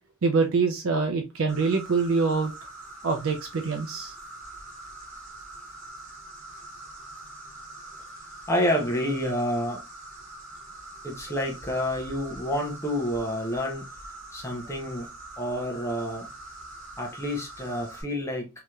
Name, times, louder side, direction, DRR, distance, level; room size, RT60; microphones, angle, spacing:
voice 1, 0.2-2.5 3.0-4.1, right 4 dB, 65° right, 0.5 m, -25 dB
Insect, 1.5-18.0, right 2 dB, 40° right, 1.5 m, -44 dB
voice 2, 8.5-9.8 11.0-13.9 14.3-15.1 15.4-16.3 17.0-18.5, equal, 10° left, 0.6 m, -28 dB
3.2 x 2.8 x 2.2 m
head